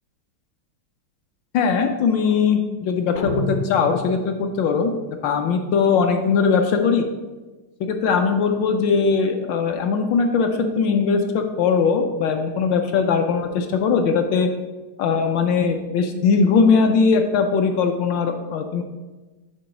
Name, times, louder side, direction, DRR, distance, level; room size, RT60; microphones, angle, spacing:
voice 1, 1.5-7.1 7.8-14.5 15.0-18.8, left 5 dB, 75° left, 5 dB, 1.2 m, -20 dB
sound 1, 3.2-4.6, left 4 dB, 55° left, 0.9 m, -29 dB
8.2 x 3.0 x 5.8 m, 1.2 s
omnidirectional pair, 2.3 m